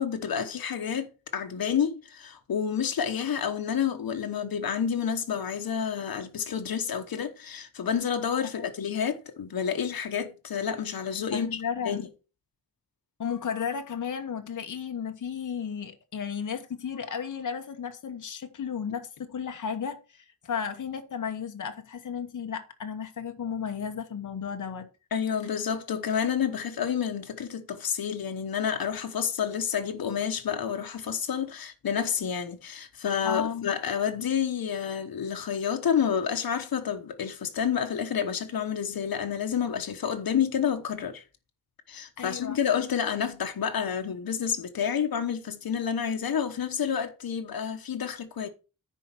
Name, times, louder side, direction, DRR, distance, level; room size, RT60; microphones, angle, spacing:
voice 1, 0.0-12.1 25.1-41.2 41.9-48.5, left 8 dB, 90° left, 1.1 m, -29 dB
voice 2, 11.3-12.0 13.2-24.9 33.2-33.7 42.2-42.6, left 7 dB, 60° left, 1.2 m, -34 dB
10.0 x 4.7 x 5.9 m
wide cardioid pair, 175°, 35 cm